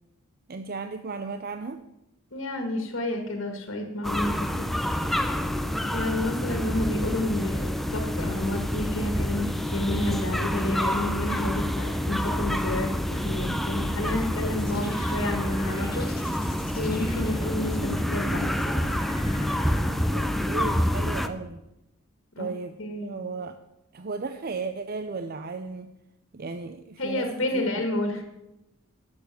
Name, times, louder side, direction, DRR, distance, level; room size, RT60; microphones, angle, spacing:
voice 1, 0.5-1.8 20.1-21.6 22.4-23.6 23.9-25.9 26.3-27.3 27.5-27.6, right 4 dB, 45° right, 9 dB, 0.6 m, -35 dB
voice 2, 2.3-4.7 5.9-16.1 16.8-18.5 22.4-22.5 22.8-23.2 27.0-28.2, left 1 dB, 65° left, 4 dB, 1.9 m, -30 dB
sound 1, 4.0-21.3, equal, ahead, 0.6 m, -28 dB
sound 2, 14.2-20.4, equal, 25° left, 2.4 m, -40 dB
11.5 x 7.1 x 7.6 m, 0.91 s
head